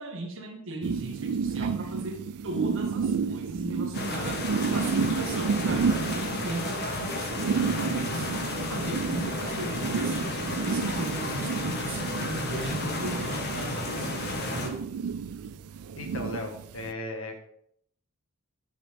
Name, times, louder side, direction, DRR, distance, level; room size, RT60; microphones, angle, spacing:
voice 1, 0.0-4.4 4.7-8.4 8.7-10.3 10.6-14.8, right 2 dB, 60° right, 3 dB, 1.7 m, -37 dB
sound 1, 0.8-16.9, right 6 dB, 80° right, 0.4 m, -31 dB
sound 2, 3.9-14.7, left 2 dB, 50° left, 1.4 m, -32 dB
voice 2, 16.0-17.4, left 2 dB, 65° left, 4 dB, 1.6 m, -37 dB
10.0 x 5.8 x 3.5 m, 0.69 s
head